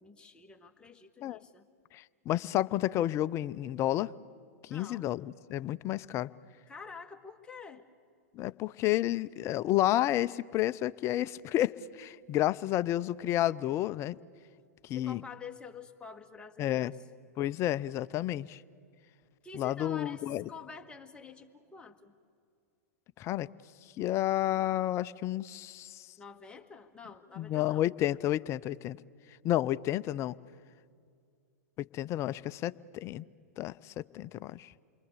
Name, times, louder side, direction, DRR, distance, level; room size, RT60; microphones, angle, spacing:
voice 1, 0.0-1.7 4.7-5.1 6.7-7.8 14.9-16.9 19.4-22.1 26.2-27.8, left 5 dB, 10° left, 4 dB, 1.6 m, -48 dB
voice 2, 1.9-4.1 4.6-6.3 8.3-14.2 14.8-15.2 16.6-16.9 17.4-18.6 19.5-20.4 23.2-23.5 24.0-26.1 27.4-29.0 29.4-30.3 31.8-33.2 33.6-34.7, left 14 dB, 35° left, 17 dB, 0.6 m, -31 dB
28.0 x 24.0 x 8.3 m, 2.3 s
figure-of-eight pair, 100°, 9 cm